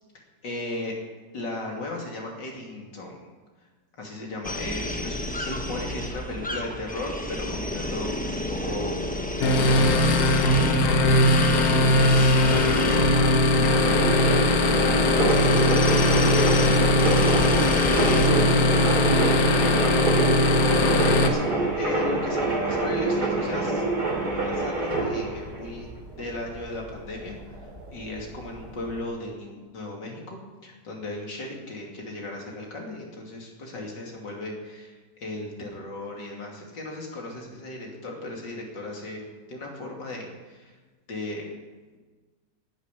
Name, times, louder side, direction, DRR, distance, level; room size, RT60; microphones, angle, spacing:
voice 1, 0.4-1.0 1.3-3.3 3.6-3.7 4.0-8.9 9.6-14.1 20.8-23.8 24.2-25.9 26.2-39.2 39.5-40.8 41.1-41.5, left 2 dB, 85° left, -1 dB, 3.4 m, -36 dB
sound 1, 4.4-18.3, left 1 dB, 10° left, 0.5 m, -32 dB
sound 2, 9.4-21.3, left 1 dB, 60° left, 1.5 m, -20 dB
sound 3, 13.6-29.0, right 2 dB, 65° right, 3.8 m, -27 dB
voice 2, 15.1-19.0, right 1 dB, 90° right, -1 dB, 3.6 m, -36 dB
10.5 x 9.8 x 10.0 m, 1.3 s
omnidirectional pair, 1.9 m